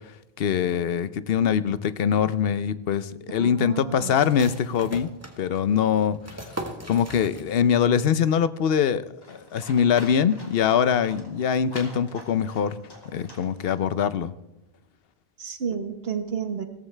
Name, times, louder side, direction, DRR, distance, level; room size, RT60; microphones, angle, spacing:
voice 1, 0.4-5.1 5.4-6.5 6.9-12.8 13.1-14.3, left 8 dB, 70° left, 14 dB, 0.9 m, -23 dB
voice 2, 3.3-4.2 15.4-16.6, right 7 dB, 70° right, 8 dB, 1.5 m, -31 dB
sound 1, 4.2-7.8 8.1-8.2 8.6-9.1, right 1 dB, 15° right, 1.5 m, -39 dB
Livestock farm animals working animals, 9.2-14.2, equal, 20° left, 2.7 m, -45 dB
16.5 x 14.5 x 3.3 m, 0.95 s
omnidirectional pair, 1.0 m